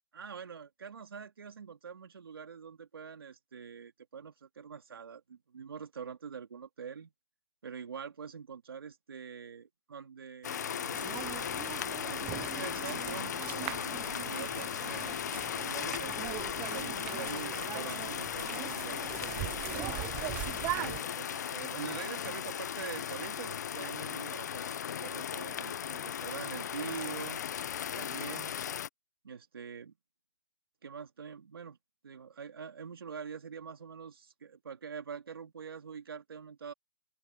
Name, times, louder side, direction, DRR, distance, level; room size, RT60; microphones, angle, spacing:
voice 1, 0.1-7.1 7.6-11.1 11.8-16.3 16.6-19.6 20.4-27.4 28.0-28.7 29.2-29.9 30.8-31.8 32.0-36.7, right 6 dB, 85° right, 2.6 m, -45 dB
sound 1, 10.4-28.9, left 9 dB, 50° left, 0.7 m, -37 dB
sound 2, 10.9-21.0, right 18 dB, 15° right, 0.5 m, -41 dB
open air
hypercardioid pair, 170°, 12 cm